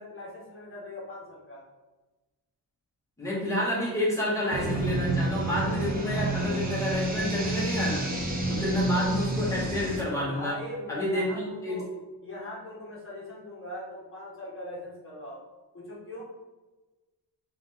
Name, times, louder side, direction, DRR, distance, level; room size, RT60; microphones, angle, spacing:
voice 1, 0.0-1.6 10.3-11.9 12.2-15.4 15.7-16.3, left 1 dB, 30° left, -6 dB, 1.4 m, -40 dB
voice 2, 3.2-8.1 8.5-10.5 10.9-11.8, left 1 dB, 5° left, -6 dB, 1.5 m, -29 dB
sound 1, 4.5-10.0, right 2 dB, 20° right, 0.7 m, -29 dB
3.8 x 3.5 x 3.6 m, 1.1 s
wide cardioid pair, 145°, 41 cm